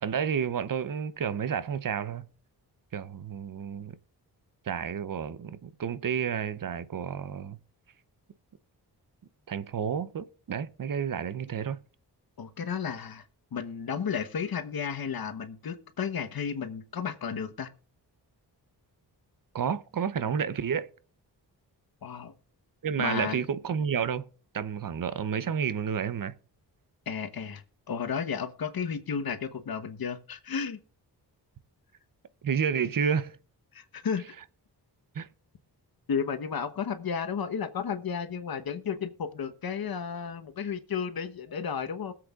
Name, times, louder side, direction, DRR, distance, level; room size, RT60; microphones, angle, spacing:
voice 1, 0.0-2.2 2.9-3.9 4.7-7.6 9.5-11.8 19.5-20.9 22.8-24.3 24.5-26.3 32.4-33.4 35.1-35.3, right 7 dB, 55° right, 0.8 m, -30 dB
voice 2, 12.4-13.2 13.5-17.7 22.0-22.3 23.0-23.4 27.1-30.8 33.7-34.3 36.1-42.1, left 6 dB, 60° left, 1.1 m, -33 dB
20.5 x 7.7 x 2.4 m
wide cardioid pair, 90°, 40 cm